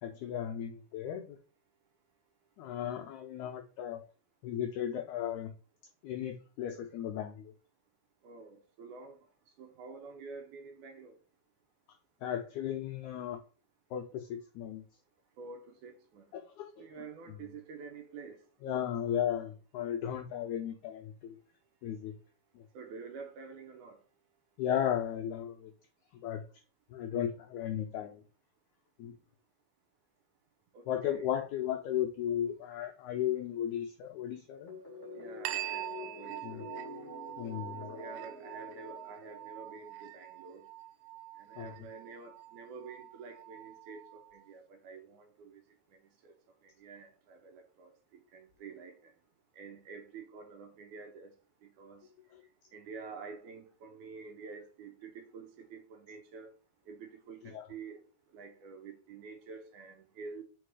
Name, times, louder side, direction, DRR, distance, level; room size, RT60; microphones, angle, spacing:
voice 1, 0.0-1.4 2.6-4.0 4.4-5.5 6.0-7.5 12.2-13.4 13.9-14.8 16.3-16.7 18.6-21.4 21.8-22.1 22.6-22.7 24.6-25.7 26.2-26.4 26.9-28.2 29.0-29.1 30.9-34.7 36.4-36.6 37.4-38.0 41.6-41.7 52.3-52.4 57.5-57.6, left 10 dB, 80° left, 1.7 m, -35 dB
voice 2, 8.2-9.2 9.6-11.2 15.4-16.4 16.8-18.4 22.7-24.0 30.7-31.3 35.2-36.7 37.9-40.7 41.4-45.6 46.2-46.3 46.6-47.9 48.3-49.1 49.5-51.3 51.6-52.1 52.7-56.5 56.9-58.0 58.3-60.4, right 5 dB, 70° right, 2.1 m, -48 dB
sound 1, 34.7-39.8, left 3 dB, 40° left, 1.0 m, -47 dB
sound 2, 35.5-44.5, right 15 dB, 85° right, 2.3 m, -44 dB
4.6 x 4.5 x 4.7 m
omnidirectional pair, 4.0 m